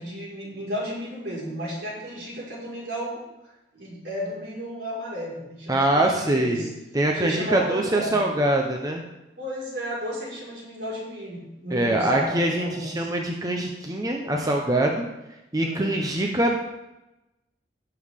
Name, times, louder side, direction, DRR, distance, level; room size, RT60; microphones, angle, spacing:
voice 1, 0.0-3.2 3.7-6.7 7.1-8.2 9.4-13.1 15.5-15.9, equal, 70° right, -5 dB, 4.8 m, -33 dB
voice 2, 5.7-6.7 6.9-9.0 11.7-15.0 15.5-16.6, right 1 dB, 20° right, 1 dB, 0.9 m, -23 dB
17.0 x 7.0 x 3.7 m, 0.96 s
head